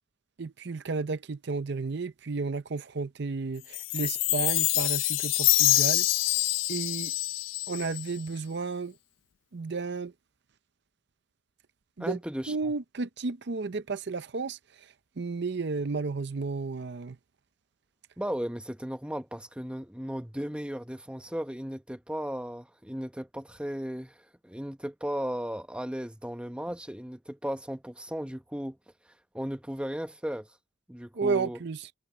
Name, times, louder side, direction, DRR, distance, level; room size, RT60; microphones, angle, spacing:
voice 1, 0.4-6.1 6.7-7.1 7.7-8.9 9.5-10.1 12.0-12.2 12.5-14.6 15.2-17.2 31.1-31.9, right 4 dB, 55° right, 0.6 m, -32 dB
Chime, 3.7-8.2, left 17 dB, 75° left, 0.4 m, -26 dB
voice 2, 12.0-12.7 18.2-24.2 24.4-28.8 29.3-30.5 30.9-31.6, equal, 5° right, 0.9 m, -35 dB
head